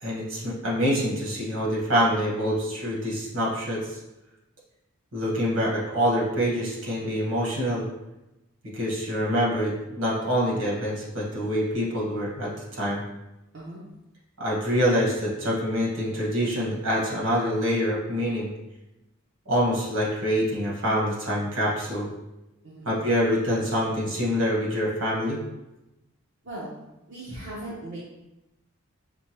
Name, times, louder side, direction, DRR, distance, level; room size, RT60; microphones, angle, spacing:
voice 1, 0.0-4.0 5.1-7.8 8.7-13.0 14.4-18.5 19.4-22.1 22.8-25.4, equal, 75° right, -5 dB, 1.5 m, -26 dB
voice 2, 26.4-26.8 27.1-28.0, right 1 dB, 55° right, -8 dB, 0.9 m, -38 dB
6.0 x 2.3 x 3.0 m, 0.94 s
head